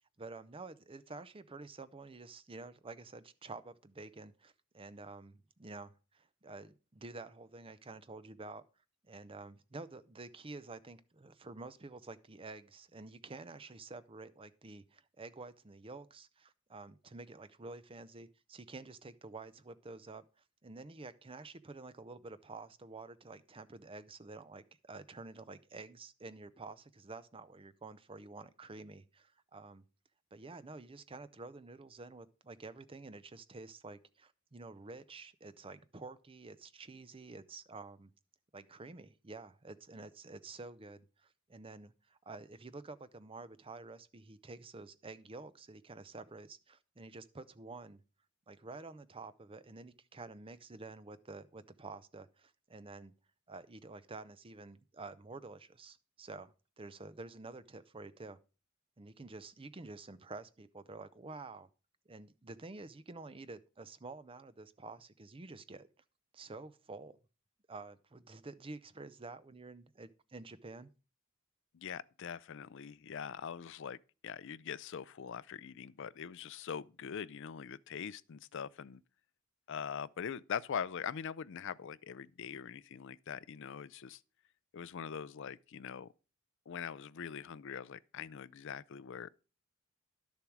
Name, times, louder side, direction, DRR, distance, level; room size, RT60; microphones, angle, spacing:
voice 1, 0.2-8.6 9.1-20.2 20.6-29.8 30.3-38.1 38.5-48.0 48.5-53.1 53.5-58.4 59.0-61.7 62.1-65.9 66.3-67.2 67.7-70.9, right 3 dB, 25° right, 0.6 m, -49 dB
voice 2, 71.7-79.0 79.7-84.2 84.7-86.1 86.7-89.3, left 7 dB, 60° left, 0.4 m, -42 dB
11.5 x 7.0 x 4.7 m
head